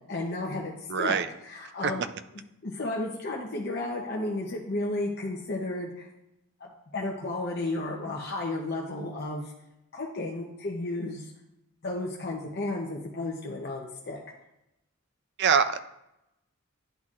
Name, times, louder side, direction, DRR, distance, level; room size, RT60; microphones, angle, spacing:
voice 1, 0.1-2.0 2.6-6.1 6.6-9.5 9.9-11.3 11.8-14.2, left 2 dB, 50° left, -2 dB, 0.7 m, -33 dB
voice 2, 0.9-1.3 1.8-1.9 15.4-15.8, right 6 dB, 50° right, 12 dB, 0.4 m, -23 dB
11.0 x 4.0 x 2.4 m, 0.86 s
head